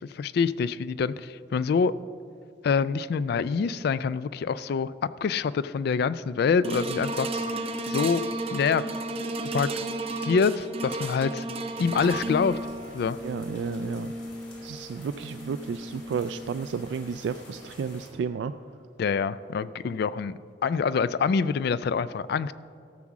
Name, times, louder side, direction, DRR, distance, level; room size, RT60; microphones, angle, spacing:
voice 1, 0.0-1.9 2.6-4.9 5.2-7.3 7.9-8.2 8.5-8.8 9.5-9.7 10.2-11.5 11.8-12.6 12.9-13.2 19.0-22.5, left 5 dB, 60° left, 17 dB, 0.3 m, -26 dB
sound 1, 6.6-17.0 17.6-17.7, right 2 dB, 35° right, 0.7 m, -34 dB
sound 2, 11.8-18.1, left 1 dB, 80° left, 2.9 m, -49 dB
voice 2, 13.2-14.1 14.6-18.5, right 6 dB, 75° right, 10 dB, 0.3 m, -32 dB
13.5 x 6.0 x 7.2 m, 2.3 s
head